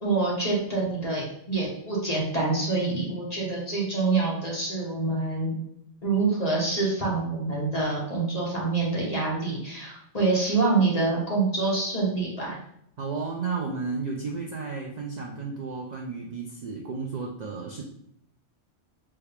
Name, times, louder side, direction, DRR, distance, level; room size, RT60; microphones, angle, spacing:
voice 1, 0.0-5.5 6.0-12.6, right 3 dB, 35° left, -4 dB, 1.1 m, -26 dB
voice 2, 13.0-17.8, right 4 dB, 70° right, 0 dB, 0.4 m, -33 dB
4.4 x 2.3 x 3.3 m, 0.71 s
omnidirectional pair, 1.3 m